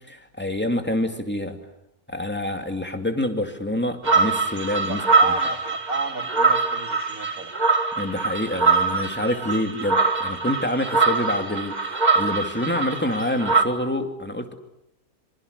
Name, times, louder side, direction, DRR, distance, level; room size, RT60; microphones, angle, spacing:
voice 1, 0.1-1.6 2.1-5.0 8.0-11.8 12.1-14.5, left 1 dB, 5° left, 6 dB, 2.5 m, -27 dB
sound 1, 4.0-13.6, right 4 dB, 30° right, 2.0 m, -23 dB
voice 2, 4.9-7.5, right 2 dB, 70° right, 5 dB, 3.4 m, -33 dB
26.0 x 25.5 x 8.3 m, 0.83 s
omnidirectional pair, 1.5 m